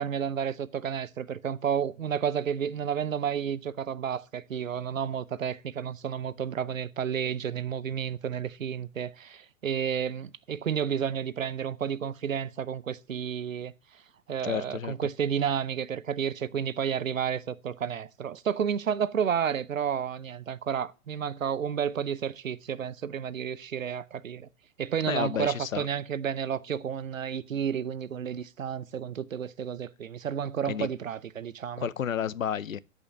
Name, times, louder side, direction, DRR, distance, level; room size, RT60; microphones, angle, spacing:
voice 1, 0.0-13.7 14.3-24.5 24.8-31.9, right 8 dB, 85° right, 0.8 m, -31 dB
voice 2, 14.4-14.9 25.1-25.9 30.6-30.9 31.8-32.8, left 8 dB, 85° left, 0.6 m, -31 dB
10.0 x 5.5 x 7.5 m
figure-of-eight pair, 105°, 39 cm